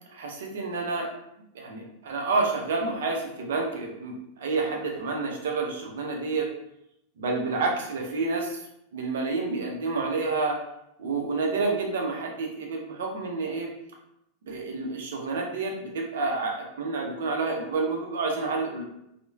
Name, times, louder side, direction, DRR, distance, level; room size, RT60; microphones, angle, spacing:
voice 1, 0.1-1.1 1.5-6.5 7.2-8.6 8.9-10.6 11.0-13.7 14.4-18.8, right 3 dB, 60° right, 1 dB, 0.5 m, -29 dB
3.0 x 2.0 x 2.3 m, 0.80 s
figure-of-eight pair, 90°, 0 cm